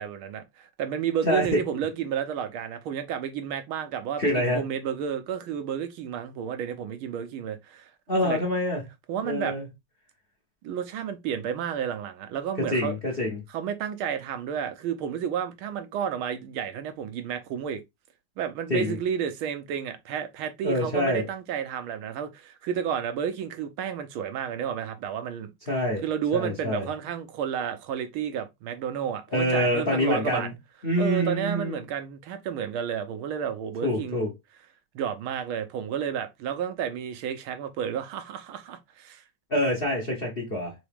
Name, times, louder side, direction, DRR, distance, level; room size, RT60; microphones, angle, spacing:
voice 1, 0.0-7.9 8.2-8.4 9.1-9.6 10.6-12.9 13.5-17.8 18.4-25.5 26.0-30.5 31.0-34.3 34.9-39.2, right 8 dB, 80° right, 1.5 m, -31 dB
voice 2, 4.2-4.6 8.1-8.8 9.2-9.6 12.6-13.4 18.7-19.0 20.6-21.3 25.7-26.0 26.3-26.9 29.3-30.5 30.8-31.8 33.8-34.3 39.5-40.7, left 1 dB, 40° left, 0.8 m, -26 dB
3.9 x 3.6 x 3.4 m
omnidirectional pair, 2.4 m